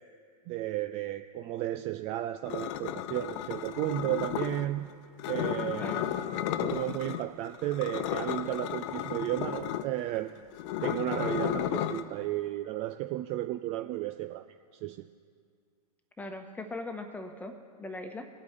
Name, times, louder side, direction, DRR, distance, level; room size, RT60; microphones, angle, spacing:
voice 1, 0.5-4.9 5.3-6.1 6.6-10.4 10.8-15.1, right 14 dB, 30° right, 9 dB, 0.4 m, -33 dB
sound 1, 2.5-4.7 5.2-7.2 7.5-12.0, left 11 dB, 45° left, 0.7 m, -33 dB
voice 2, 5.7-6.1 16.2-18.3, left 2 dB, 10° left, 6 dB, 1.2 m, -40 dB
21.0 x 8.5 x 3.3 m, 2.1 s
hypercardioid pair, 110°, 21 cm